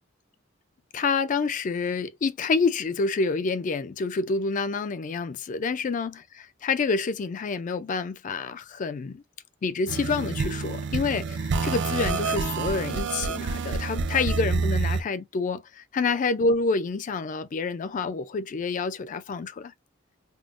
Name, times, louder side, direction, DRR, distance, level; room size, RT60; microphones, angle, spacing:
voice 1, 0.9-6.2 6.6-9.2 9.6-19.7, left 4 dB, 40° left, 0.3 m, -28 dB
sound 1, 9.9-15.0, right 4 dB, 60° right, 0.4 m, -28 dB
3.6 x 2.0 x 2.4 m
head